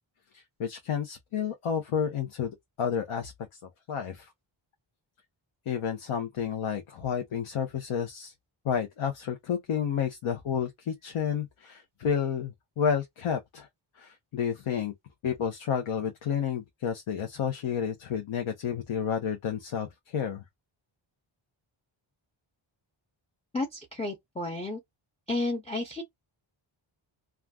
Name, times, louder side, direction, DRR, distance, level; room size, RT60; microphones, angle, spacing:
voice 1, 0.3-2.5 2.8-3.3 3.9-4.3 5.7-8.3 8.6-13.7 14.0-14.9 15.2-20.4, left 7 dB, 80° left, 0.8 m, -30 dB
voice 2, 23.5-24.8 25.3-26.0, left 2 dB, 15° left, 0.4 m, -32 dB
2.4 x 2.3 x 3.4 m
wide cardioid pair, 155°, 49 cm